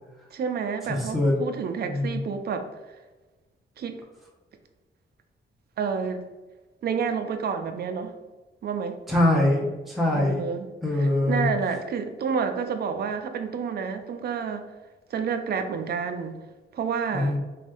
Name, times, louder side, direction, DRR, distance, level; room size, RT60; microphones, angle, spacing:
voice 1, 0.3-2.7 3.8-4.0 5.8-6.2 6.8-8.1 8.6-9.0 10.1-14.7 15.1-16.4 16.7-17.4, right 6 dB, 55° right, 0.4 m, -29 dB
voice 2, 0.9-1.3 1.8-2.2 9.1-10.4 10.8-11.5 17.1-17.4, left 1 dB, ahead, 0.6 m, -23 dB
3.3 x 2.2 x 2.5 m
cardioid pair, 85°, 20 cm